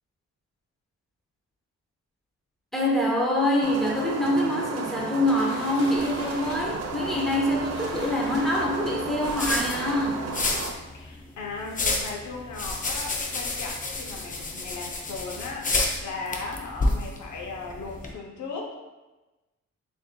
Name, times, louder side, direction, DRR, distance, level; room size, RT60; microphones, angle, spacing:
voice 1, 2.7-10.4, left 1 dB, ahead, -3 dB, 0.8 m, -25 dB
sound 1, 3.6-10.7, right 4 dB, 60° right, 0.5 m, -34 dB
sound 2, 4.2-10.3 11.2-11.3 11.7-11.8 12.1-12.5, left 1 dB, 50° left, 1.4 m, -43 dB
sound 3, 5.9-18.1, left 2 dB, 25° left, 0.5 m, -31 dB
voice 2, 10.9-18.8, left 4 dB, 75° left, 0 dB, 0.7 m, -37 dB
6.3 x 2.6 x 2.2 m, 1.1 s
cardioid pair, 110°, 30 cm